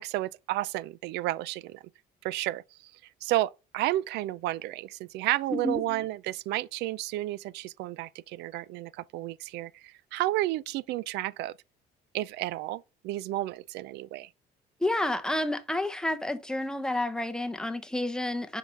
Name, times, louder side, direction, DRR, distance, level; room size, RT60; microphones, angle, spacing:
voice 1, 0.0-1.8 2.2-2.9 3.2-11.5 12.1-14.3, right 16 dB, 85° right, 0.4 m, -32 dB
voice 2, 14.8-18.6, left 1 dB, 5° left, 0.8 m, -30 dB
5.3 x 4.9 x 5.1 m
cardioid pair, 110°, 17 cm